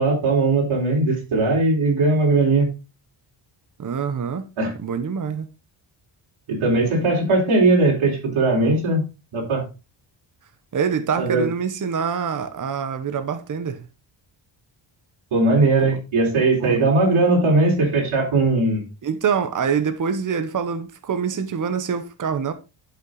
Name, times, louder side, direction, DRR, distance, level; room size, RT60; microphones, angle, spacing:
voice 1, 0.0-2.7 4.6-4.7 6.5-9.0 9.3-9.6 11.2-11.5 15.3-18.8, right 2 dB, 75° right, 4.2 m, -19 dB
voice 2, 3.8-4.5 4.8-5.5 10.7-13.9 15.8-15.9 16.6-16.9 19.0-22.5, right 6 dB, 40° right, 1.0 m, -25 dB
11.5 x 5.6 x 3.9 m
wide cardioid pair, 130°, 48 cm